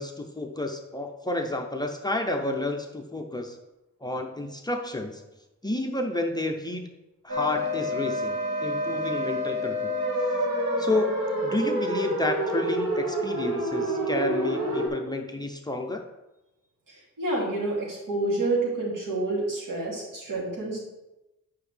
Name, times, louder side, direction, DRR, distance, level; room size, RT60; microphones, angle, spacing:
voice 1, 0.0-3.6 4.0-5.2 5.6-6.9 7.2-9.9 10.8-16.0, left 2 dB, 15° left, 3 dB, 0.5 m, -30 dB
sound 1, 7.3-14.9, equal, 60° right, 1.7 m, -28 dB
voice 2, 16.9-20.8, right 2 dB, 85° right, -5 dB, 2.8 m, -28 dB
9.0 x 5.7 x 3.3 m, 0.99 s
wide cardioid pair, 170°, 32 cm